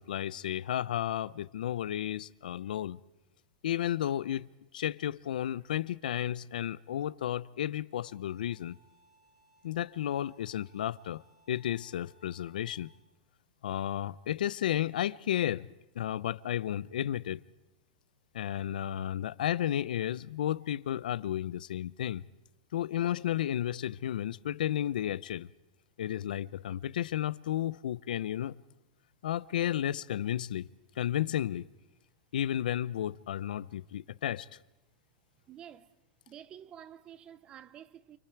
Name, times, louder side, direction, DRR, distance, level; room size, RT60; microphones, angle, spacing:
voice 1, 0.0-3.0 3.6-8.8 9.6-12.9 13.6-17.4 18.3-22.2 22.7-25.5 26.0-28.6 29.2-30.7 31.0-31.7 32.3-34.6, left 11 dB, 80° left, 0.7 m, -33 dB
Bowed string instrument, 7.9-13.0, equal, 65° right, 6.6 m, -66 dB
voice 2, 35.5-35.9 36.3-38.2, right 10 dB, 20° right, 0.7 m, -50 dB
29.0 x 26.0 x 4.7 m
supercardioid pair, 170°, 5 cm